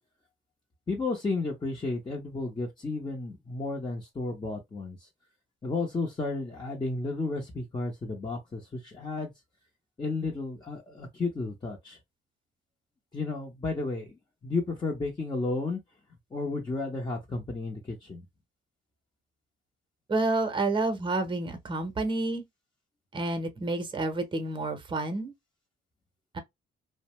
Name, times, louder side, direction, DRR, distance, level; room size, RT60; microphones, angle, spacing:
voice 1, 0.9-5.0 5.6-9.3 10.0-12.0 13.1-15.8 16.3-18.2, left 3 dB, 20° left, 0.7 m, -32 dB
voice 2, 20.1-22.4 23.1-25.3 26.3-26.4, right 2 dB, 25° right, 0.8 m, -29 dB
2.6 x 2.1 x 3.0 m
cardioid pair, 90°, 20 cm